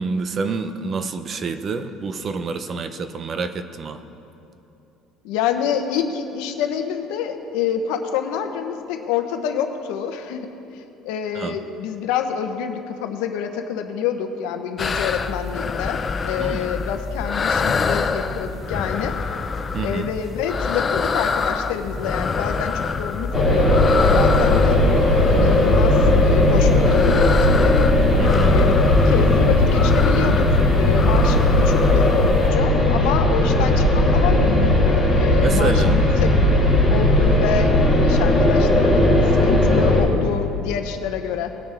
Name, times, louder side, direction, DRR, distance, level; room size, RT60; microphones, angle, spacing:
voice 1, 0.0-4.0 11.3-11.6 16.4-16.7 19.7-20.1 28.2-28.6 35.3-36.0, right 4 dB, 30° right, 9 dB, 0.5 m, -27 dB
voice 2, 5.2-10.5 10.7-19.1 19.8-26.0 26.2-27.8 28.5-36.3 36.9-37.7 38.0-39.2 39.4-41.5, left 8 dB, 80° left, 6 dB, 0.9 m, -27 dB
sound 1, 14.8-32.5, left 5 dB, 20° left, 0.4 m, -26 dB
sound 2, 23.3-40.0, left 1 dB, ahead, 2.4 m, -17 dB
19.5 x 6.8 x 3.5 m, 2.9 s
cardioid pair, 160°, 0 cm